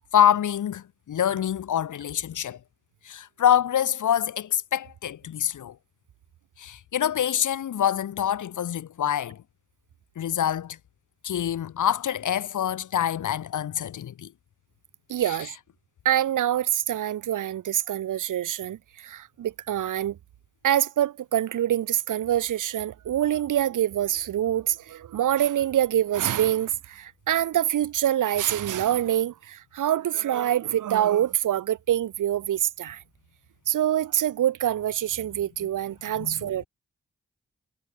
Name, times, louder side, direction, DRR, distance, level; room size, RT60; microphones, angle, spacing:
voice 1, 0.1-2.6 3.0-5.8 6.6-9.4 10.2-10.8 11.2-14.3 15.2-15.4 36.2-36.4, left 10 dB, 70° left, 0.6 m, -25 dB
voice 2, 15.1-15.5 16.0-20.2 20.6-33.0 33.7-36.7, right 11 dB, 75° right, 0.5 m, -25 dB
cardioid pair, 45°, 31 cm